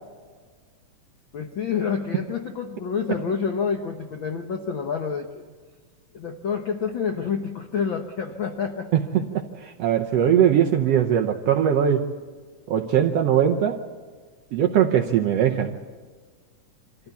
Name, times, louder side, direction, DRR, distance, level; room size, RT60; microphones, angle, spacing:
voice 1, 1.3-5.4 6.1-8.9, left 6 dB, 90° left, 4 dB, 1.0 m, -28 dB
voice 2, 8.9-12.0 12.7-13.8 14.5-15.8, right 9 dB, 70° right, 3 dB, 1.5 m, -21 dB
25.0 x 14.5 x 8.3 m, 1.5 s
omnidirectional pair, 3.8 m